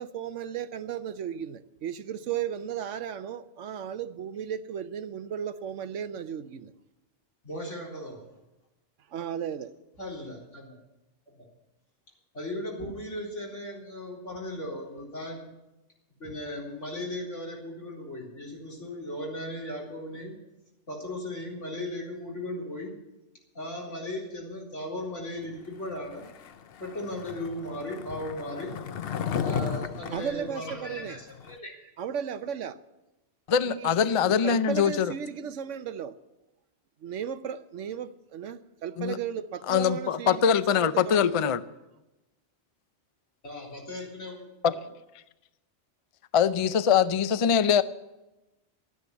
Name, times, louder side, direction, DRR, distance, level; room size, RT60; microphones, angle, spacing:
voice 1, 0.0-6.7 9.1-9.7 30.1-31.2 32.0-32.8 33.7-33.9 34.3-36.1 37.0-41.5, right 8 dB, 85° right, 1.1 m, -35 dB
voice 2, 7.4-8.3 10.0-10.8 11.4-11.5 12.3-15.5 16.2-20.3 20.9-22.9 23.5-26.2 26.8-28.7 29.4-31.7 43.4-44.8, left 1 dB, 90° left, 4.4 m, -37 dB
Skateboard, 26.1-31.6, left 7 dB, 60° left, 0.8 m, -35 dB
voice 3, 33.5-35.1 39.0-39.2 39.7-41.6 44.6-44.7 46.3-47.8, left 7 dB, 45° left, 0.4 m, -23 dB
13.0 x 9.9 x 8.3 m
omnidirectional pair, 1.2 m